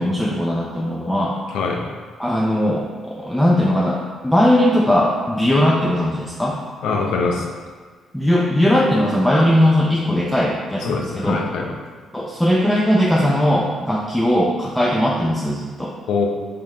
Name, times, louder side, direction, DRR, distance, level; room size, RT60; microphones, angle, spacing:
voice 1, 0.0-1.4 2.2-6.6 8.1-11.4 12.1-15.9, left 1 dB, 5° left, -4 dB, 0.5 m, -19 dB
voice 2, 1.5-1.9 6.8-7.5 10.8-11.7 16.1-16.3, left 4 dB, 80° left, 0 dB, 0.6 m, -23 dB
4.9 x 3.5 x 2.8 m, 1.5 s
cardioid pair, 90°, 0 cm